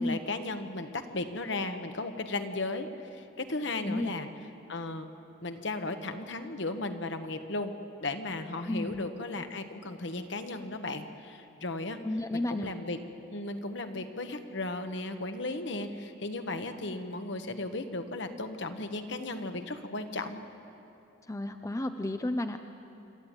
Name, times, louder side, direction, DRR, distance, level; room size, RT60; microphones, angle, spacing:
voice 1, 0.0-4.3 4.7-5.1 5.4-7.7 8.0-12.0 12.3-13.0 13.3-20.4, left 2 dB, 60° left, 7 dB, 1.2 m, -35 dB
voice 2, 8.7-9.1 12.0-12.7 21.3-22.6, left 1 dB, 15° left, 7 dB, 0.5 m, -32 dB
26.5 x 13.0 x 8.9 m, 2.9 s
head